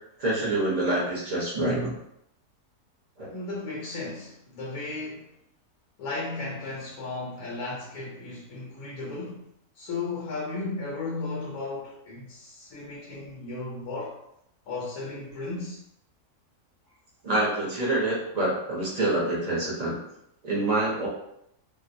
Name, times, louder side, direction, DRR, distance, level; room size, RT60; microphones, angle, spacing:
voice 1, 0.2-2.0 3.2-3.3 17.2-20.0 20.4-21.1, right 2 dB, 40° right, -5 dB, 0.6 m, -26 dB
voice 2, 3.3-5.3 6.0-9.5 9.8-14.2 14.7-15.8, left 3 dB, 80° left, -5 dB, 1.1 m, -35 dB
2.6 x 2.1 x 2.5 m, 0.79 s
omnidirectional pair, 1.6 m